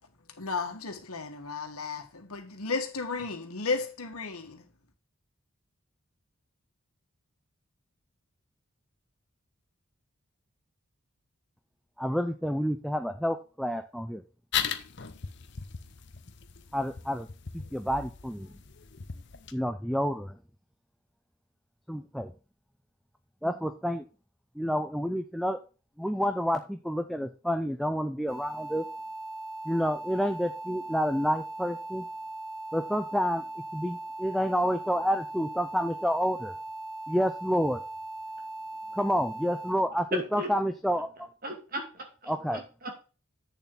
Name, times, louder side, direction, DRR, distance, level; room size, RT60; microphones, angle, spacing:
voice 1, 0.4-4.6, left 4 dB, 90° left, 1.8 m, -34 dB
voice 2, 12.0-14.2 16.7-17.3 17.5-18.5 19.5-20.4 21.9-22.3 23.4-24.0 24.6-25.6 26.0-28.8 29.7-32.0 32.7-33.4 33.7-36.5 37.1-37.8 39.0-41.3 42.3-42.6, equal, ahead, 0.5 m, -29 dB
sound 1, 14.5-19.5, left 8 dB, 50° left, 0.8 m, -37 dB
sound 2, 28.3-39.7, right 2 dB, 30° left, 2.4 m, -39 dB
voice 3, 41.4-43.0, right 1 dB, 40° right, 2.3 m, -39 dB
8.4 x 7.0 x 4.0 m
head